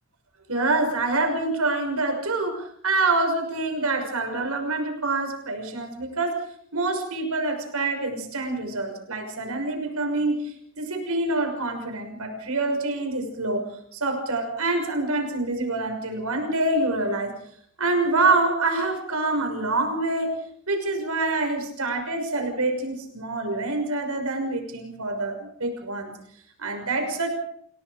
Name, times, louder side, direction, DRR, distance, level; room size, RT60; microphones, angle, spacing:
voice 1, 0.5-6.4 6.7-13.6 13.9-17.3 17.8-20.3 20.7-26.1 26.6-27.3, right 2 dB, 85° right, 4 dB, 6.1 m, -26 dB
29.0 x 18.0 x 5.1 m, 0.65 s
head